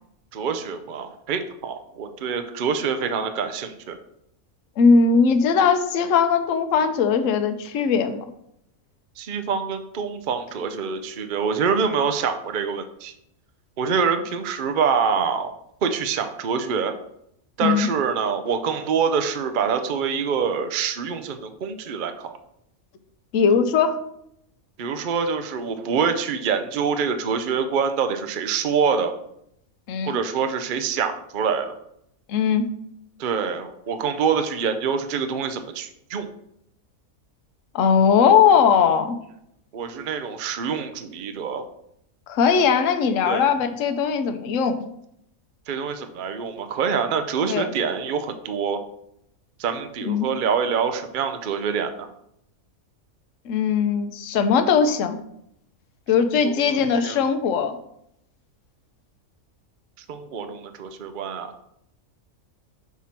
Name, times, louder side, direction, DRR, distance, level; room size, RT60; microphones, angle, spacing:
voice 1, 0.3-4.0 9.2-13.1 13.8-15.5 15.8-16.9 17.6-22.3 24.8-29.1 30.1-31.7 33.2-36.3 39.7-41.6 43.2-43.5 45.7-48.8 49.6-52.1 56.5-57.2 60.1-61.5, right 6 dB, 55° right, 8 dB, 0.6 m, -25 dB
voice 2, 4.8-8.2 17.6-17.9 23.3-24.0 29.9-30.2 32.3-32.7 37.7-39.2 42.3-44.8 47.5-47.7 50.0-50.3 53.5-55.2 56.1-57.8, left 6 dB, 70° left, 8 dB, 1.0 m, -19 dB
5.9 x 4.4 x 5.8 m, 0.75 s
omnidirectional pair, 1.5 m